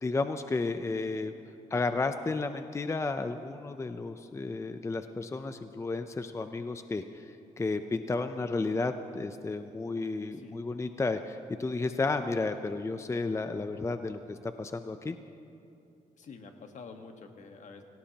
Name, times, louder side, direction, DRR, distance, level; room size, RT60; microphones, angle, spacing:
voice 1, 0.0-1.3 1.7-15.2, left 3 dB, 20° left, 8 dB, 0.6 m, -32 dB
voice 2, 16.2-17.8, left 4 dB, 65° left, 5 dB, 1.5 m, -48 dB
26.5 x 17.0 x 2.9 m, 2.6 s
cardioid pair, 95°, 14 cm